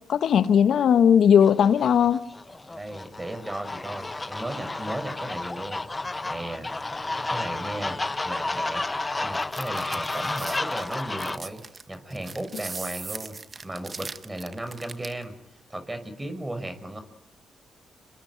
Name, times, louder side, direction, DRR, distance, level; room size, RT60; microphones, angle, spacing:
voice 1, 0.1-2.2, left 8 dB, 70° left, 1.4 m, -18 dB
sound 1, 1.4-11.4, left 2 dB, 25° left, 1.2 m, -32 dB
voice 2, 2.8-5.8 6.3-6.7 7.3-8.8 9.2-11.6 11.9-13.3 13.6-15.3 15.7-17.0, right 1 dB, 20° right, 5.9 m, -35 dB
sound 2, 9.3-15.2, right 4 dB, 40° right, 1.5 m, -39 dB
27.0 x 22.5 x 9.6 m
hypercardioid pair, 45°, 0 cm